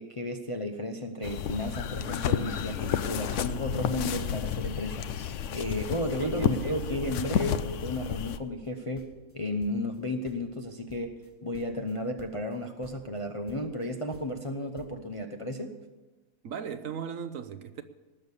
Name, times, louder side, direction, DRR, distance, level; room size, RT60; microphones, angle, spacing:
voice 1, 0.0-9.1 9.3-11.1 11.4-15.7, left 1 dB, 30° left, 0.6 m, -33 dB
sound 1, 1.2-8.4, left 8 dB, 60° left, 0.9 m, -31 dB
voice 2, 6.2-7.3 16.4-17.8, right 7 dB, 65° right, 1.1 m, -38 dB
sound 2, 6.4-6.8 7.0-10.0 10.2-12.6 12.8-13.8 14.1-14.5 14.8-14.9, equal, 10° left, 0.9 m, -54 dB
19.0 x 7.1 x 8.2 m
omnidirectional pair, 1.7 m